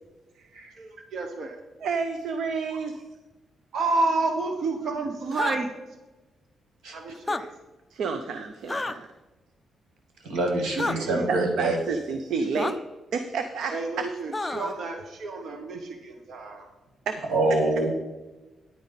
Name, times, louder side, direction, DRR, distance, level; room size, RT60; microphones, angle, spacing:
voice 1, 0.8-1.6 2.7-2.8 3.7-5.7 6.9-7.5 10.7-11.3 13.7-16.7, right 3 dB, 50° right, 4 dB, 1.0 m, -30 dB
voice 2, 1.8-3.0 7.9-9.1 11.0-12.8 13.1-14.0 17.1-17.2, right 5 dB, 70° right, 8 dB, 0.7 m, -30 dB
sound 1, 5.3-5.6 7.2-7.4 8.7-8.9 10.8-11.0 12.6-12.7 14.3-14.7, left 2 dB, 15° left, 0.4 m, -29 dB
voice 3, 10.2-11.8 17.3-17.9, right 2 dB, 90° right, 1 dB, 2.3 m, -25 dB
10.0 x 9.0 x 4.1 m, 1.1 s
cardioid pair, 165°, 0 cm